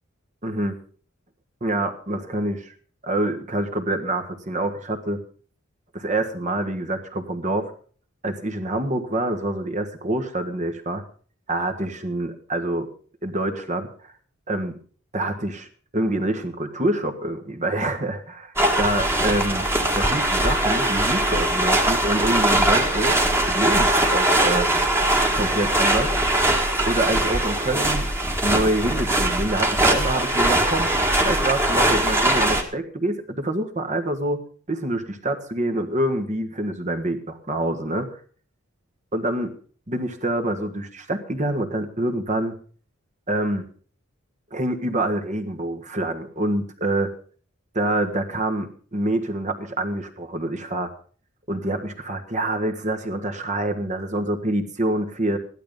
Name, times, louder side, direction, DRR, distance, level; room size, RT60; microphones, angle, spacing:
voice 1, 0.4-0.8 1.6-2.7 3.0-5.2 5.9-7.7 8.2-11.0 11.5-12.9 13.2-13.9 14.5-14.8 15.1-15.7 15.9-19.6 19.9-23.2 23.5-24.7 25.3-26.2 26.9-28.1 28.4-30.9 31.2-38.2 39.1-39.5 39.9-42.5 43.3-43.6 44.5-47.1 47.7-50.9 51.5-55.4, right 1 dB, 35° right, 7 dB, 1.6 m, -26 dB
sound 1, 18.6-32.6, right 1 dB, 10° right, 1.8 m, -21 dB
14.5 x 11.5 x 5.3 m, 0.43 s
head